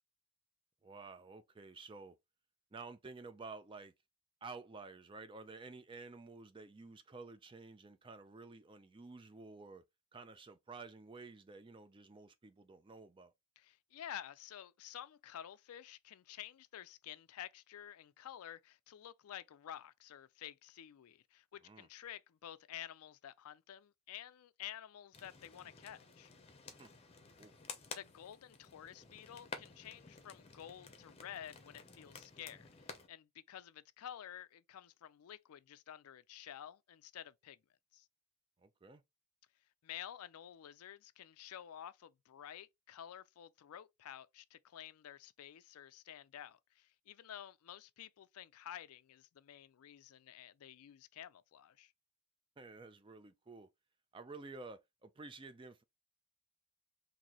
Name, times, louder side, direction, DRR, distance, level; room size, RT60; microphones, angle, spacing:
voice 1, 0.8-2.2 2.7-3.9 4.4-9.8 10.1-13.3 21.6-21.9 26.8-26.9 27.4-27.5 38.6-39.0 52.6-53.7 54.1-55.8, right 3 dB, 20° right, 0.4 m, -52 dB
voice 2, 13.6-26.3 28.0-37.6 37.9-38.1 39.8-51.9, left 10 dB, 70° left, 0.4 m, -51 dB
sound 1, 25.1-33.1, left 5 dB, 25° left, 0.7 m, -53 dB
4.0 x 2.7 x 2.9 m
head